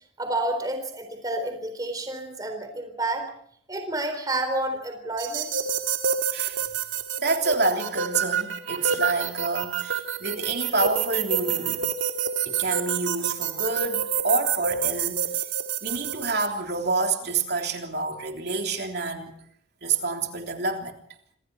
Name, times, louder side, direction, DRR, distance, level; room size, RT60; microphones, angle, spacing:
voice 1, 0.2-3.3 3.7-5.5, right 1 dB, 20° right, 4.1 m, -29 dB
sound 1, 5.2-16.5, right 7 dB, 75° right, 2.3 m, -28 dB
voice 2, 7.2-11.8 12.4-15.3 15.8-19.4 19.8-21.0, right 3 dB, 55° right, 3.4 m, -28 dB
27.0 x 26.5 x 4.3 m
head